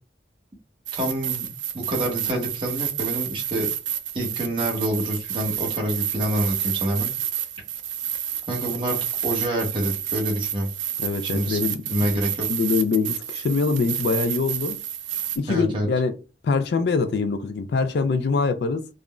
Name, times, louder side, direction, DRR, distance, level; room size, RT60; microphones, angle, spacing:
voice 1, 0.9-1.5 1.7-3.7 4.1-7.1 8.5-9.0 9.2-10.7 11.2-11.6 11.9-12.5 15.5-15.9, equal, 25° right, 0.9 m, -27 dB
sound 1, 0.9-15.4, right 10 dB, 85° right, 0.4 m, -29 dB
voice 2, 11.0-11.9 12.5-14.8 15.4-16.2 16.4-18.9, left 4 dB, 60° left, 0.3 m, -24 dB
3.6 x 2.0 x 2.3 m
head